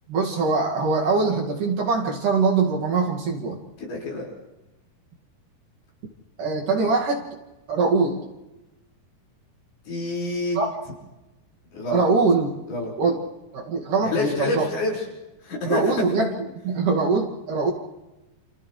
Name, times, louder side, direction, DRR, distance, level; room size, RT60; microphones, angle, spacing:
voice 1, 0.1-3.6 6.4-7.3 7.7-8.2 10.6-10.7 11.9-12.5 13.0-13.2 13.5-14.7 15.7-16.3 16.6-17.7, right 4 dB, 55° right, -1 dB, 3.6 m, -22 dB
voice 2, 3.8-4.3 9.9-10.6 11.7-12.0 12.7-13.2 14.0-15.0 15.4-16.1, left 2 dB, 75° left, -3 dB, 7.4 m, -27 dB
29.0 x 28.5 x 3.3 m, 1.0 s
omnidirectional pair, 4.6 m